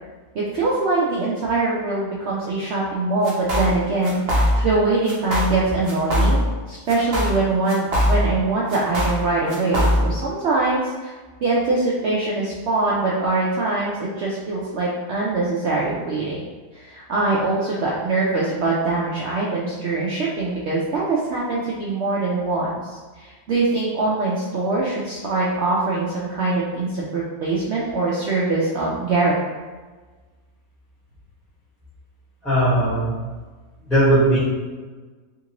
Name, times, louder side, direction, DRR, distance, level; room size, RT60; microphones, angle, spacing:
voice 1, 0.3-6.4 6.7-11.1 11.4-16.4 16.7-29.3, right 3 dB, 80° right, -5 dB, 0.6 m, -23 dB
sound 1, 3.2-3.8 4.0-4.8 5.1-5.6 5.8-6.6 6.9-8.4 8.7-10.2, equal, 50° right, 0.8 m, -21 dB
voice 2, 32.4-33.2 33.9-34.4, right 1 dB, ahead, -11 dB, 1.1 m, -18 dB
3.6 x 2.5 x 2.9 m, 1.3 s
omnidirectional pair, 1.7 m